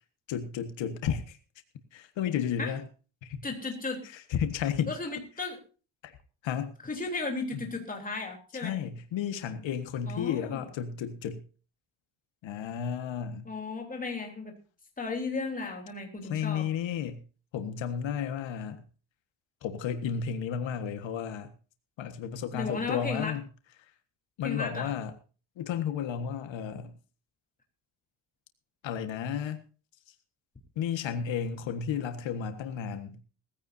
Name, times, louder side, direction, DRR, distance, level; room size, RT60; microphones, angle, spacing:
voice 1, 0.3-1.4 1.9-2.8 3.2-3.4 4.1-5.0 6.0-6.2 6.4-6.7 7.5-7.6 8.5-11.4 12.4-13.5 16.2-17.2 17.5-18.8 19.6-21.5 22.0-23.4 24.4-25.1 25.6-26.9 28.8-29.6 30.7-33.2, left 8 dB, 90° left, 8 dB, 1.6 m, -33 dB
voice 2, 3.4-4.0 4.9-5.6 6.8-8.7 10.1-10.6 13.5-14.5 15.0-16.7 22.5-23.4 24.4-24.9, left 3 dB, 20° left, 2 dB, 3.4 m, -35 dB
19.0 x 15.5 x 2.7 m, 0.36 s
cardioid pair, 165°, 44 cm